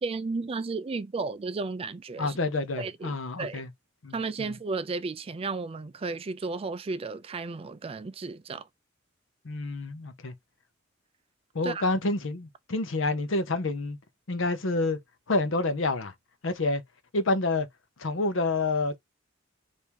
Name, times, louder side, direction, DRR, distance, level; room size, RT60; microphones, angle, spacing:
voice 1, 0.0-2.4 2.8-3.6 4.1-8.7 11.6-11.8, right 3 dB, 30° right, 0.4 m, -33 dB
voice 2, 2.2-3.7 4.0-4.5 9.4-10.3 11.5-14.0 14.3-15.0 15.3-16.1 16.4-16.8 17.1-17.7 18.0-19.0, left 2 dB, 70° left, 0.7 m, -28 dB
3.5 x 2.7 x 4.5 m
head